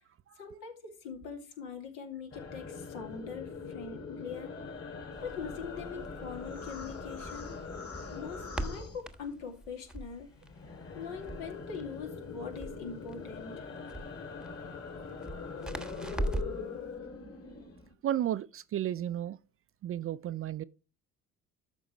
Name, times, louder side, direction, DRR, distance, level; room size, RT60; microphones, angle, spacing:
voice 1, 0.4-4.6 5.2-7.5 8.1-10.3 10.9-13.7, left 6 dB, 70° left, 2.6 m, -42 dB
sound 1, 2.3-9.6 9.9-17.9, left 4 dB, 35° left, 2.9 m, -43 dB
Crackle, 5.1-16.7, right 1 dB, ahead, 1.1 m, -41 dB
voice 2, 18.0-19.4 19.8-20.6, right 11 dB, 35° right, 0.4 m, -33 dB
12.5 x 5.4 x 3.1 m
hypercardioid pair, 55°, 42 cm